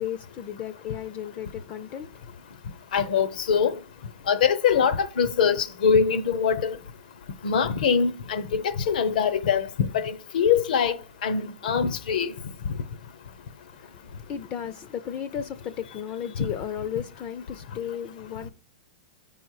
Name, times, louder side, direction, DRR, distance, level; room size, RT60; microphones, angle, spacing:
voice 1, 0.0-2.3 13.7-18.5, left 9 dB, 30° left, 0.4 m, -35 dB
voice 2, 2.9-3.8 4.3-6.8 7.4-12.3, left 7 dB, 75° left, 0.9 m, -23 dB
9.1 x 5.5 x 4.6 m
supercardioid pair, 150°, 5 cm